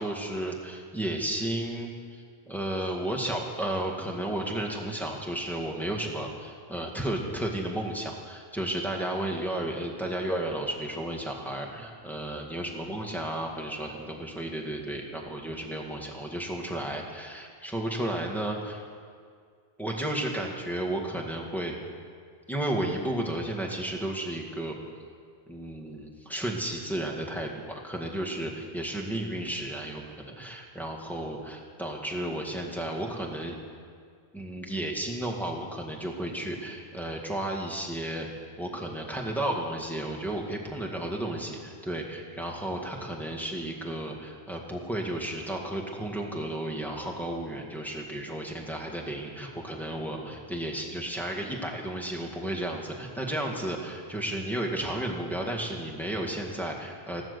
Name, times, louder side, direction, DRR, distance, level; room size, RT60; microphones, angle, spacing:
voice 1, 0.0-18.8 19.8-21.8 22.5-24.8 25.5-33.6 34.3-57.3, right 1 dB, ahead, 0 dB, 1.9 m, -33 dB
15.0 x 12.0 x 6.9 m, 2.1 s
omnidirectional pair, 1.1 m